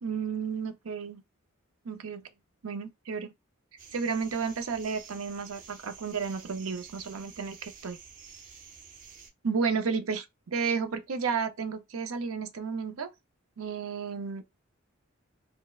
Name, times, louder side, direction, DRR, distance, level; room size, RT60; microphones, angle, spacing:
voice 1, 0.0-1.2 1.8-2.2 2.6-3.3 3.9-8.0 9.4-13.1 13.6-14.4, right 5 dB, 80° right, 0.6 m, -32 dB
sound 1, 3.8-9.3, right 6 dB, 40° right, 0.7 m, -50 dB
4.2 x 2.1 x 2.3 m
head